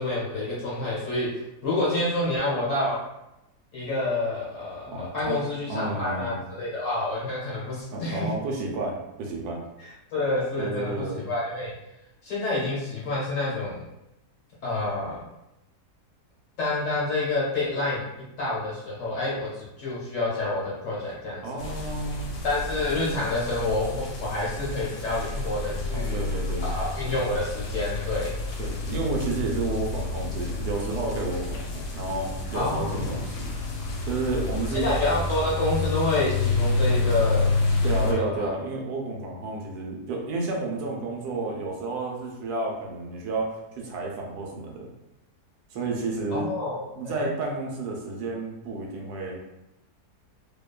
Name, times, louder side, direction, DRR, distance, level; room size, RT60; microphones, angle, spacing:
voice 1, 0.0-3.0 3.7-8.3 9.8-11.7 12.2-13.9 14.6-15.2 16.6-18.0 18.4-21.4 22.4-26.2 26.6-28.3 32.5-33.1 34.7-37.5 37.8-38.5 46.3-47.3, left 2 dB, 55° left, -7 dB, 1.2 m, -28 dB
voice 2, 4.9-5.4 5.7-6.4 7.9-9.6 10.6-11.2 21.4-22.3 25.9-26.7 28.6-33.5 34.1-34.9 37.8-44.9 45.7-46.5 46.9-49.4, right 2 dB, 80° right, -1 dB, 1.1 m, -31 dB
sound 1, 21.6-38.1, left 3 dB, 80° left, 1.1 m, -29 dB
2.9 x 2.1 x 2.2 m, 0.91 s
omnidirectional pair, 1.7 m